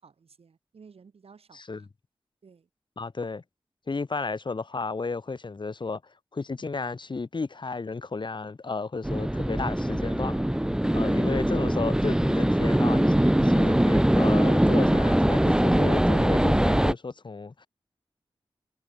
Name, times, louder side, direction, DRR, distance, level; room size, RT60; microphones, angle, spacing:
voice 1, 0.0-1.9 2.4-2.7 10.8-11.2, right 5 dB, 85° right, 5.4 m, -54 dB
voice 2, 1.5-1.8 3.0-3.4 3.9-10.6 10.9-17.7, left 4 dB, 55° left, 1.6 m, -33 dB
sound 1, 9.0-16.9, right 1 dB, 5° right, 0.8 m, -22 dB
cardioid pair, 45°, 10 cm